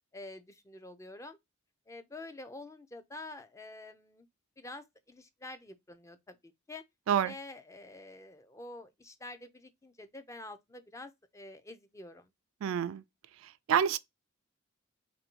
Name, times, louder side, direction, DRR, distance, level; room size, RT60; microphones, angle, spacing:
voice 1, 0.1-1.4 1.9-4.3 4.6-6.8 7.2-12.3, left 2 dB, 15° left, 0.4 m, -47 dB
voice 2, 12.6-13.0 13.7-14.0, right 8 dB, 80° right, 0.3 m, -27 dB
3.1 x 2.6 x 4.4 m
head